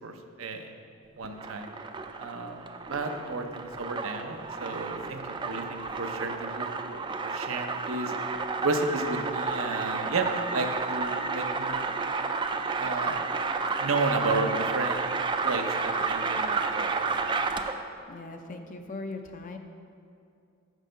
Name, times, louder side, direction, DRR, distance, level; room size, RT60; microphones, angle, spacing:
voice 1, 0.0-0.7 1.1-1.7 2.2-2.6 2.9-8.1 8.6-11.9 12.8-13.2 13.8-15.1 15.4-17.0, right 3 dB, 90° right, 5 dB, 0.7 m, -32 dB
sound 1, 1.2-17.9, right 4 dB, 25° right, 0.3 m, -31 dB
voice 2, 18.1-19.6, left 3 dB, 40° left, 5 dB, 0.5 m, -39 dB
6.4 x 6.4 x 5.1 m, 2.6 s
head